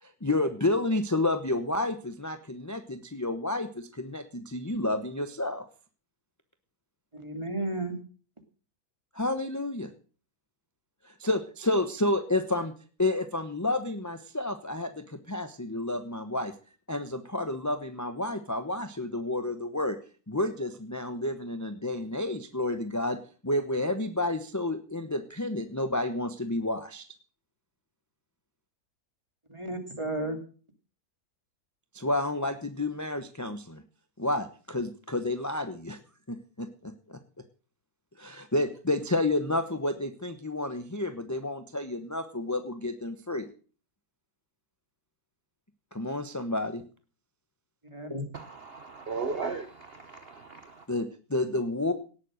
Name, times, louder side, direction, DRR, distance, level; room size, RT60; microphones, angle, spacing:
voice 1, 0.0-5.6 9.1-9.9 11.0-12.7 13.0-16.5 16.9-20.0 20.3-27.0 31.9-33.8 34.2-36.0 36.3-37.2 38.2-43.5 45.9-46.8 50.9-51.9, left 2 dB, 15° left, 0.9 m, -30 dB
voice 2, 7.1-8.0 29.5-30.4 47.8-48.2, right 1 dB, 20° right, 2.6 m, -33 dB
voice 3, 48.3-50.9, right 4 dB, 45° right, 1.2 m, -36 dB
18.0 x 7.5 x 6.4 m
omnidirectional pair, 1.6 m